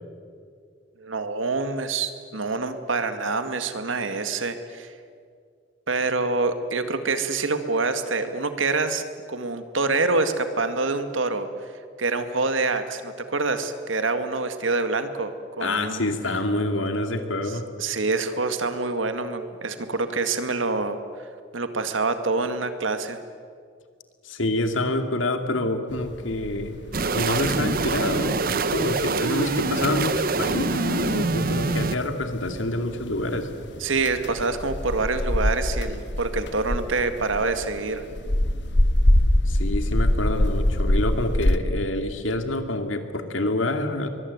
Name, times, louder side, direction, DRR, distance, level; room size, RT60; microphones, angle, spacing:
voice 1, 1.0-4.9 5.9-9.0 9.3-11.5 12.0-15.3 15.6-16.0 17.8-21.0 21.5-23.2 33.8-38.0, right 3 dB, 90° right, 9 dB, 2.0 m, -26 dB
voice 2, 15.6-17.7 24.2-26.8 27.1-33.5 39.5-44.1, left 2 dB, 80° left, 7 dB, 2.5 m, -27 dB
sound 1, 25.9-41.6, left 1 dB, 60° left, 1.4 m, -26 dB
sound 2, 26.9-32.0, right 3 dB, 50° right, 0.9 m, -25 dB
23.0 x 22.0 x 9.6 m, 2.2 s
head